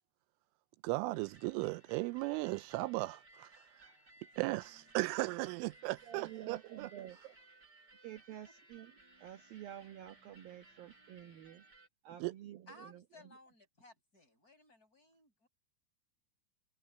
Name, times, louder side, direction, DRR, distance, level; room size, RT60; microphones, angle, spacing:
voice 1, 0.8-3.5 3.8-3.9 4.4-6.9 12.2-12.3, right 22 dB, 85° right, 3.0 m, -36 dB
sound 1, 1.1-11.9, right 2 dB, 20° right, 7.0 m, -62 dB
voice 2, 6.1-7.4 8.0-8.9 9.2-11.7 12.0-13.0, right 11 dB, 65° right, 2.5 m, -50 dB
voice 3, 12.7-15.5, left 1 dB, 15° left, 8.3 m, -59 dB
omnidirectional pair, 5.7 m